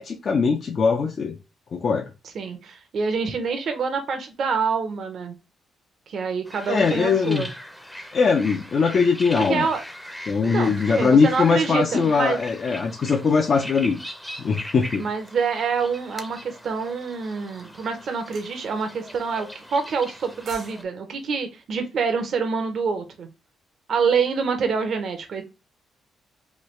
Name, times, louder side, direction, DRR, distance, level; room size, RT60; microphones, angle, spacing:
voice 1, 0.0-1.4 1.7-2.1 6.7-7.4 8.1-9.7 10.3-14.0 14.4-15.0, left 5 dB, 50° left, 0.4 m, -21 dB
voice 2, 2.3-5.4 6.1-7.5 9.3-9.8 10.4-12.4 15.0-23.3 23.9-25.4, right 5 dB, 60° right, 0.6 m, -26 dB
sound 1, 6.5-20.8, equal, 5° left, 0.5 m, -40 dB
sound 2, 18.3-18.5 20.2-20.8 21.1-21.3, right 3 dB, 80° right, 1.1 m, -43 dB
3.1 x 2.3 x 3.1 m
cardioid pair, 95°, 0 cm